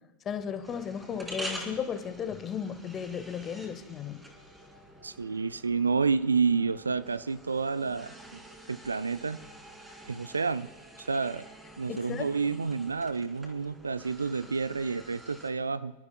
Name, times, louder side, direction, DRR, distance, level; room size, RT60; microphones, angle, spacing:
voice 1, 0.2-4.2 11.9-12.3, left 7 dB, 25° left, 11 dB, 1.1 m, -35 dB
sound 1, 0.6-15.5, right 1 dB, 5° right, 2.9 m, -47 dB
voice 2, 5.0-8.4 8.7-9.4 10.1-10.7 11.0-11.5 11.8-15.9, right 5 dB, 75° right, 15 dB, 0.4 m, -29 dB
28.0 x 13.0 x 2.2 m, 1.0 s
figure-of-eight pair, 90°, 0 cm